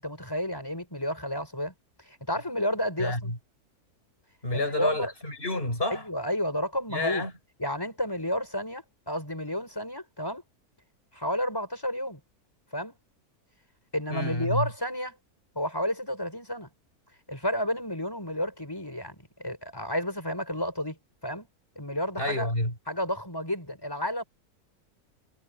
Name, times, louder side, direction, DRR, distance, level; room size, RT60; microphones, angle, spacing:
voice 1, 0.0-1.7 2.0-3.3 4.5-5.1 5.9-7.3 7.6-10.4 11.1-12.2 12.7-12.9 13.9-15.2 15.5-16.7 17.3-21.0 21.2-21.5 21.7-22.5 22.9-24.2, equal, 15° left, 6.8 m, -31 dB
voice 2, 3.0-3.4 4.4-6.0 6.9-7.3 14.1-14.7 22.2-22.7, left 1 dB, 35° left, 7.8 m, -29 dB
omnidirectional pair, 1.6 m